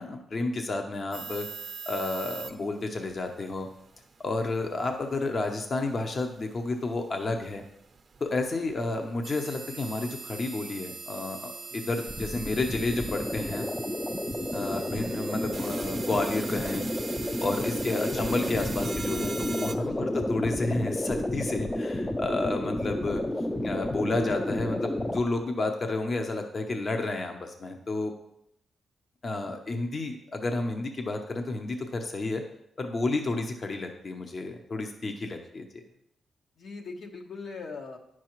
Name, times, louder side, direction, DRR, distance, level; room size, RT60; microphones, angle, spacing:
voice 1, 0.0-1.5 1.9-3.7 4.2-7.6 8.2-13.7 14.5-16.8 17.4-23.2 23.6-28.1 29.2-32.4 32.8-35.8, left 2 dB, 45° left, 4 dB, 0.8 m, -31 dB
sound 1, 1.1-19.8, right 4 dB, 50° right, 0.6 m, -42 dB
voice 2, 11.7-12.1 14.2-14.6 19.9-20.2 35.9-36.0 36.6-38.0, left 4 dB, 65° left, 3 dB, 1.1 m, -42 dB
sound 2, 12.1-25.2, left 1 dB, 15° left, 0.5 m, -31 dB
9.5 x 6.1 x 3.0 m, 0.77 s
cardioid pair, 80°, 0 cm